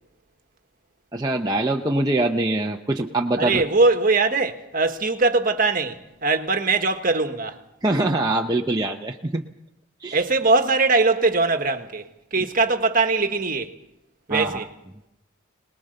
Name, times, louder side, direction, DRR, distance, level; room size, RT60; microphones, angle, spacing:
voice 1, 1.1-3.6 7.8-9.4 10.0-10.2 12.4-12.5 14.3-14.6, right 2 dB, 20° right, 0.8 m, -24 dB
voice 2, 3.4-7.6 10.1-12.0 12.3-13.7 14.3-14.7, right 3 dB, 40° right, 1.5 m, -21 dB
23.0 x 20.0 x 6.7 m
head